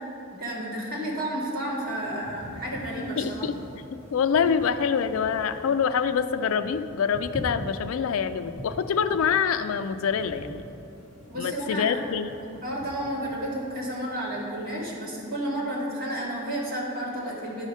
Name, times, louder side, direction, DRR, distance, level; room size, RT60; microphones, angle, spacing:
voice 1, 0.3-3.4 11.3-12.0 12.4-17.7, right 1 dB, 40° right, -5 dB, 1.9 m, -31 dB
sound 1, 1.7-14.9, equal, 5° left, 1.5 m, -43 dB
voice 2, 3.2-3.5 3.9-10.6 11.4-12.3, left 7 dB, 70° left, 11 dB, 0.3 m, -25 dB
10.5 x 4.9 x 5.4 m, 2.8 s
head